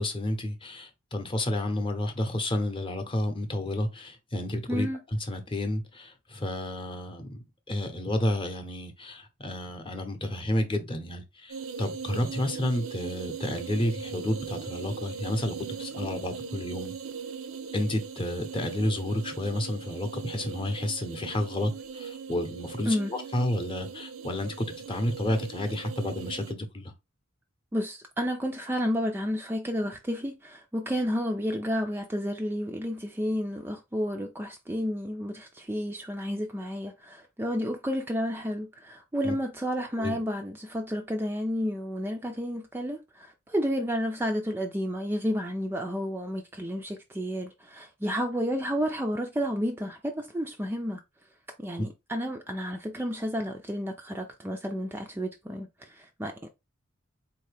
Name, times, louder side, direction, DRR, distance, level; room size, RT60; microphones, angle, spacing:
voice 1, 0.0-4.9 5.3-16.9 17.7-26.9 39.2-39.3 40.0-40.2 51.8-51.9, left 1 dB, 25° left, 0.7 m, -31 dB
voice 2, 4.7-5.0 22.9-23.1 27.7-51.0 51.6-56.5, equal, 10° right, 0.3 m, -31 dB
sound 1, 11.5-26.5, right 6 dB, 75° right, 0.5 m, -39 dB
4.0 x 2.7 x 3.2 m
head